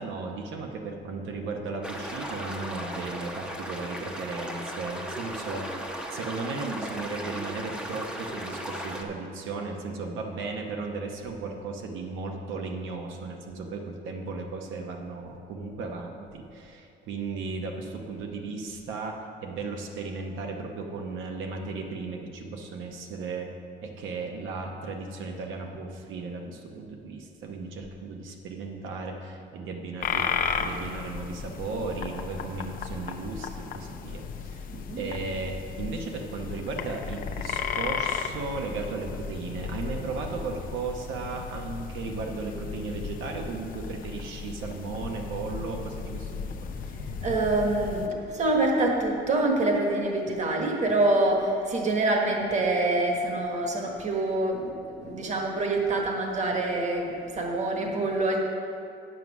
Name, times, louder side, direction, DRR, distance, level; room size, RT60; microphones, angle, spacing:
voice 1, 0.0-23.5 23.8-30.3 30.6-34.7 35.0-46.9, right 4 dB, 85° right, 2 dB, 1.0 m, -35 dB
sound 1, 1.8-9.0, equal, 5° right, 0.8 m, -36 dB
sound 2, 30.0-48.1, left 6 dB, 45° left, 0.6 m, -35 dB
voice 2, 34.7-35.0 47.2-57.1 57.3-58.4, right 2 dB, 35° right, 1 dB, 1.4 m, -26 dB
9.3 x 7.5 x 6.0 m, 2.5 s
cardioid pair, 170°, 20 cm